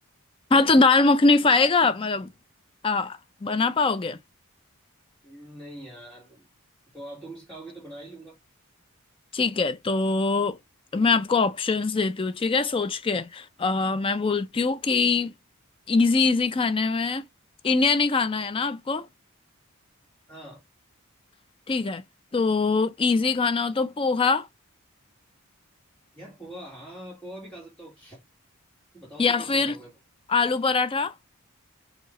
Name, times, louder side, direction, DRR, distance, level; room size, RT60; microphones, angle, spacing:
voice 1, 0.5-2.3 2.8-4.2 9.3-10.6 10.9-15.3 15.9-17.2 17.6-19.1 21.7-22.0 22.3-24.5 29.2-29.8 30.3-31.1, left 4 dB, 25° left, 0.4 m, -23 dB
voice 2, 5.2-6.5 6.9-8.4 20.3-20.6 26.1-28.2 28.9-29.9, right 1 dB, 5° left, 1.5 m, -43 dB
4.5 x 2.5 x 3.1 m
head